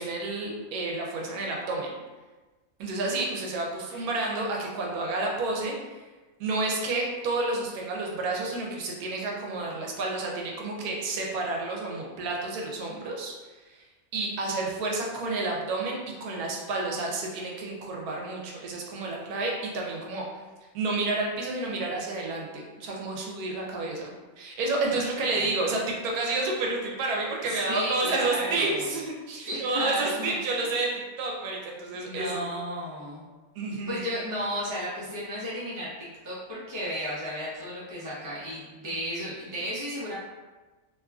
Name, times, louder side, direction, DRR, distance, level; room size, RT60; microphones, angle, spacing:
voice 1, 0.0-1.9 2.8-5.7 6.4-13.3 13.7-13.8 14.1-20.3 20.7-30.9 31.2-32.4 33.6-34.0 39.3-39.4, right 2 dB, 85° right, -1 dB, 1.1 m, -30 dB
voice 2, 24.9-25.5 27.4-28.9 29.4-30.6 31.9-33.2 33.9-40.1, equal, 20° right, -9 dB, 0.5 m, -34 dB
2.9 x 2.3 x 2.3 m, 1.2 s
omnidirectional pair, 1.5 m